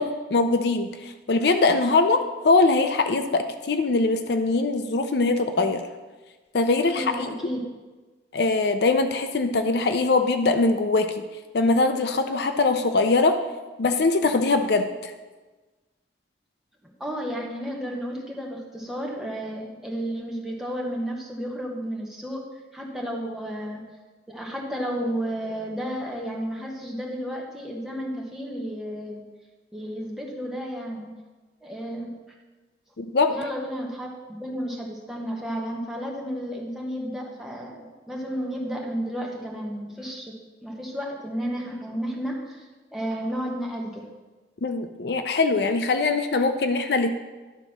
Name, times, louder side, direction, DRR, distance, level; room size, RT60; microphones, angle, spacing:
voice 1, 0.0-5.9 6.5-7.3 8.3-11.1 11.5-13.4 13.8-15.1 33.0-33.3 44.6-47.1, left 3 dB, 60° left, 8 dB, 0.5 m, -22 dB
voice 2, 6.9-7.6 16.8-22.4 22.7-23.8 24.3-29.2 29.7-31.1 31.6-32.2 33.3-40.3 40.6-44.1, equal, 5° right, -2 dB, 1.2 m, -32 dB
11.0 x 4.0 x 6.0 m, 1.3 s
head